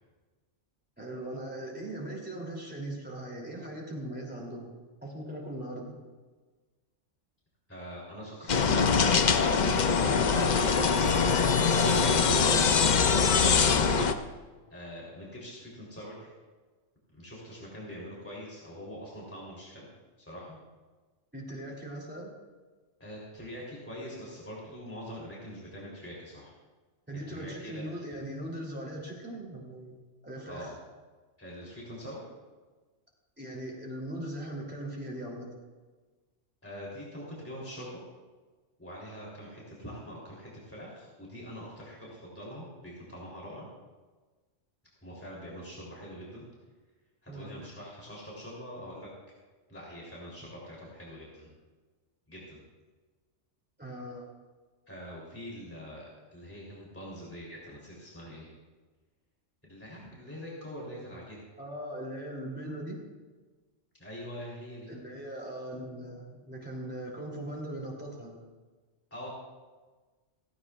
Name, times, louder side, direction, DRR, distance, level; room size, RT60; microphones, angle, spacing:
voice 1, 1.0-4.7 5.0-6.0 8.4-8.5 12.2-12.5 21.3-22.3 27.1-30.0 30.2-30.7 33.4-35.5 47.3-47.5 53.8-54.3 61.6-63.0 64.9-68.4, right 1 dB, 10° right, -3 dB, 3.0 m, -39 dB
voice 2, 7.7-11.1 14.7-16.3 17.1-19.9 20.3-20.6 23.0-26.5 27.3-27.8 30.5-30.8 31.4-32.2 36.6-38.0 38.8-43.7 45.0-46.4 47.2-49.1 49.7-51.5 52.3-52.6 54.9-58.5 59.6-61.4 64.0-64.9 69.1-69.3, equal, 10° left, -5 dB, 3.3 m, -44 dB
sound 1, 8.5-14.1, left 5 dB, 45° left, 0.7 m, -23 dB
17.0 x 16.0 x 2.4 m, 1.3 s
omnidirectional pair, 1.3 m